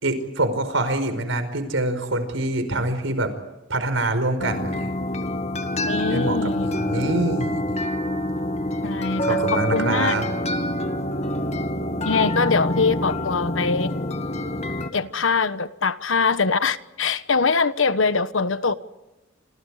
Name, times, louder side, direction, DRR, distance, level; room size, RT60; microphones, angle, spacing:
voice 1, 0.0-3.3 3.7-4.9 6.1-7.8 9.2-10.3, right 2 dB, 85° right, 5.0 m, -25 dB
sound 1, 4.4-14.9, left 1 dB, 35° left, 1.9 m, -26 dB
voice 2, 5.9-6.7 8.8-10.1 12.0-13.9 14.9-18.7, left 4 dB, 85° left, 1.2 m, -23 dB
28.5 x 27.0 x 5.0 m
head